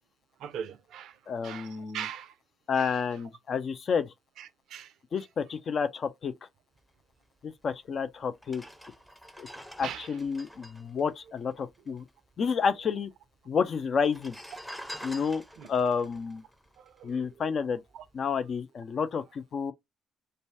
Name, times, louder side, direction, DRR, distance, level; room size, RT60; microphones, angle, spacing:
voice 1, 0.4-1.2 1.4-2.3 2.8-3.0 4.4-4.9 9.8-10.1 15.6-15.7 16.8-17.2 17.9-18.0, right 9 dB, 60° right, 0.5 m, -40 dB
voice 2, 1.3-2.1 2.7-4.1 5.1-6.3 7.4-8.6 9.4-9.5 9.8-12.0 12.4-13.1 13.5-14.4 15.0-15.4 15.7-16.4 17.0-17.8 18.1-19.7, left 6 dB, 50° left, 0.4 m, -30 dB
sound 1, 7.7-7.8 8.3-12.0 12.3-12.4 12.6-13.3 13.9-17.4 17.9-18.1, equal, 5° left, 0.6 m, -46 dB
2.6 x 2.2 x 3.3 m
figure-of-eight pair, 45°, 0 cm